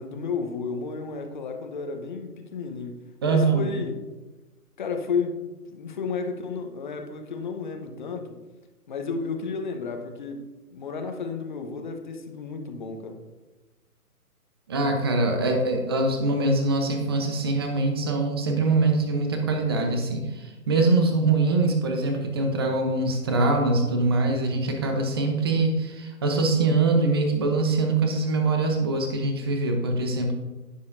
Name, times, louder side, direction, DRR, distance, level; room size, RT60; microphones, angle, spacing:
voice 1, 0.0-4.1 4.8-5.4 5.7-8.4 8.9-13.2, left 5 dB, 30° left, 5 dB, 1.0 m, -32 dB
voice 2, 3.2-3.7 14.7-30.3, right 3 dB, 15° right, 3 dB, 0.8 m, -23 dB
16.0 x 6.9 x 2.6 m, 1.2 s
figure-of-eight pair, 140°, 46 cm